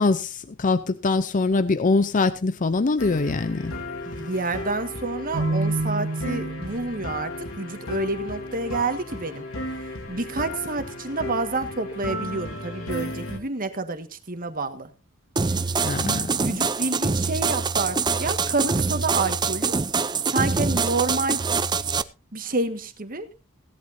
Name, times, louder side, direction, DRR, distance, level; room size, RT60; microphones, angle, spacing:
voice 1, 0.0-3.7 15.8-16.6, left 3 dB, 40° left, 0.6 m, -23 dB
sound 1, 3.0-13.4, left 1 dB, 70° left, 2.8 m, -34 dB
voice 2, 4.1-9.4 10.1-14.9 16.0-19.7 20.3-21.4 22.3-23.3, right 3 dB, 45° right, 1.6 m, -28 dB
Keyboard (musical), 5.3-7.2, right 2 dB, 70° right, 1.8 m, -28 dB
sound 2, 15.4-22.0, right 4 dB, 20° right, 0.5 m, -24 dB
17.0 x 11.5 x 2.7 m
head